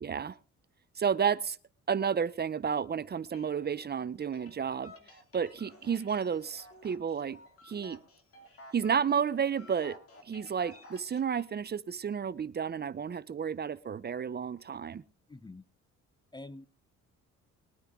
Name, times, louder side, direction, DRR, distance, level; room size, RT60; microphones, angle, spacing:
voice 1, 0.0-0.4 1.0-1.6 1.9-4.9 5.3-7.4 7.6-8.0 8.7-10.0 10.3-15.0, right 7 dB, 35° right, 0.6 m, -31 dB
sound 1, 3.3-11.4, left 2 dB, 50° left, 2.5 m, -54 dB
voice 2, 15.3-15.6 16.3-16.7, left 2 dB, 15° left, 0.5 m, -46 dB
21.5 x 9.6 x 3.6 m
cardioid pair, 90°, 30 cm